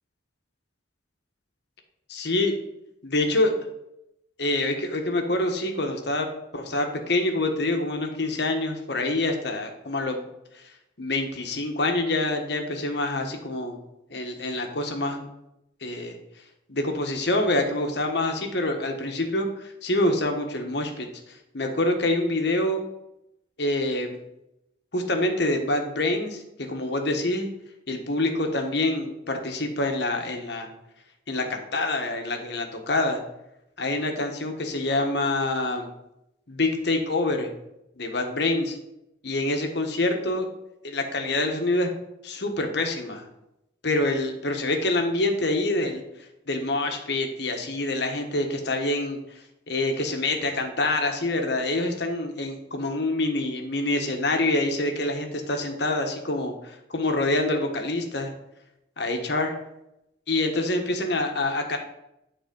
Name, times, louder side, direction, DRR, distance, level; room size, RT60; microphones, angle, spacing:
voice 1, 2.1-2.5 3.0-3.5 4.4-10.3 10.5-10.6 11.0-13.8 14.1-15.3 15.8-16.2 16.7-22.8 23.6-24.2 24.9-27.5 27.9-30.7 31.3-33.2 33.8-35.9 36.5-37.5 38.0-38.8 39.2-40.5 40.8-41.9 42.2-43.3 43.8-46.0 46.5-49.2 49.7-58.3 59.0-59.5 60.3-61.8, left 2 dB, 60° left, 4 dB, 1.3 m, -26 dB
9.4 x 4.2 x 5.3 m, 0.85 s
head